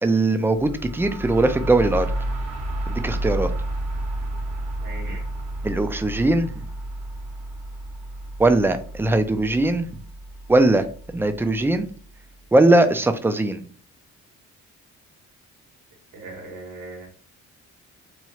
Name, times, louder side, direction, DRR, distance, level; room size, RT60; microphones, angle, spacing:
voice 1, 0.0-2.1 2.9-3.5 5.6-6.6 8.4-9.9 10.5-10.8 11.1-11.9 12.5-13.6, right 2 dB, 10° right, 8 dB, 0.3 m, -20 dB
sound 1, 0.5-12.2, right 1 dB, 55° right, 0.8 m, -31 dB
voice 2, 4.8-5.2 16.1-17.1, right 2 dB, 85° right, -1 dB, 1.5 m, -38 dB
3.0 x 2.3 x 2.8 m, 0.42 s
cardioid pair, 90°, 30 cm